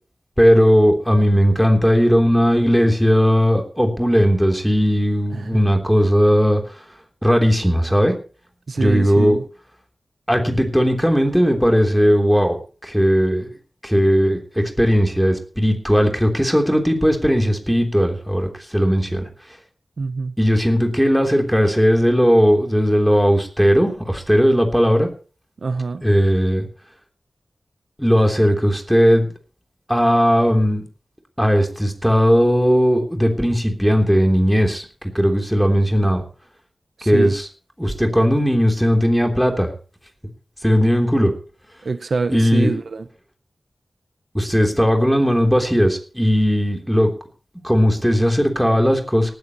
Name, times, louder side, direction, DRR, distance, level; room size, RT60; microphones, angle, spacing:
voice 1, 0.4-6.6 7.2-8.1 8.8-9.4 10.3-13.5 13.8-19.3 20.4-25.1 26.0-26.6 28.0-29.3 29.9-30.8 31.4-34.8 35.1-36.2 37.0-37.4 37.8-39.7 40.6-41.3 42.3-42.7 44.3-47.1 47.6-49.3, equal, ahead, 3 dB, 3.4 m, -17 dB
voice 2, 8.7-9.4 20.0-20.3 25.6-26.0 37.0-37.3 41.8-43.1, right 4 dB, 70° right, 11 dB, 0.9 m, -25 dB
18.5 x 13.5 x 3.1 m, 0.38 s
wide cardioid pair, 105°, 0 cm